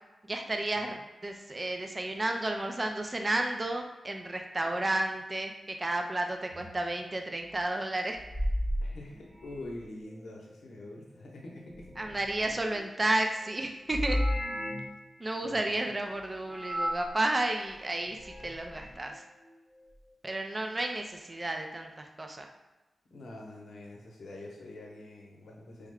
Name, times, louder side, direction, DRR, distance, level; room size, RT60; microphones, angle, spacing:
voice 1, 0.3-8.2 12.0-14.2 15.2-19.2 20.2-22.5, right 2 dB, 25° right, 4 dB, 0.4 m, -32 dB
sound 1, 6.5-6.7 8.1-9.8 11.7-12.8 13.9-15.0 16.5-17.1 18.1-19.0, equal, 55° right, 1.3 m, -34 dB
voice 2, 8.8-12.0 15.4-16.1 23.1-25.9, left 1 dB, 85° left, -1 dB, 0.7 m, -45 dB
3.4 x 2.1 x 3.5 m, 1.1 s
wide cardioid pair, 100°, 0 cm